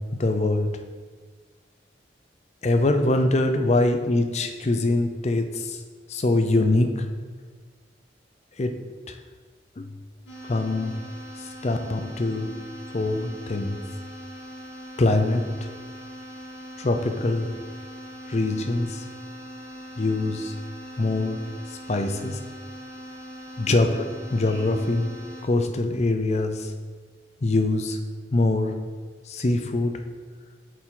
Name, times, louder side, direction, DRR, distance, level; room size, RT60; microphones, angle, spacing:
voice 1, 0.1-0.7 2.6-5.8 6.1-7.1 8.6-8.7 9.1-9.2 9.8-9.9 10.4-11.0 11.4-12.5 12.9-13.8 15.0-15.4 16.8-17.5 18.3-19.0 20.0-20.6 21.0-21.4 21.9-22.4 23.7-23.9 24.3-25.1 25.4-26.7 27.4-28.0 28.3-28.8 29.3-29.9, left 2 dB, 40° left, 6 dB, 0.5 m, -23 dB
sound 1, 10.3-25.4, equal, 70° left, 2.1 m, -41 dB
7.9 x 4.8 x 3.8 m, 1.5 s
head